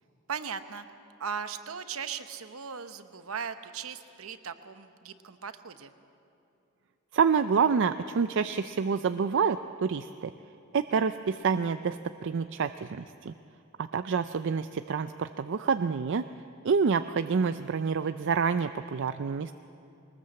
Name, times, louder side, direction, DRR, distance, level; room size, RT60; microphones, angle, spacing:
voice 1, 0.3-0.9 1.2-5.9, right 6 dB, 75° right, 10 dB, 1.0 m, -38 dB
voice 2, 7.1-10.3 10.7-13.3 13.8-16.2 16.6-19.5, right 5 dB, 60° right, 11 dB, 0.4 m, -27 dB
21.5 x 19.5 x 7.7 m, 2.8 s
head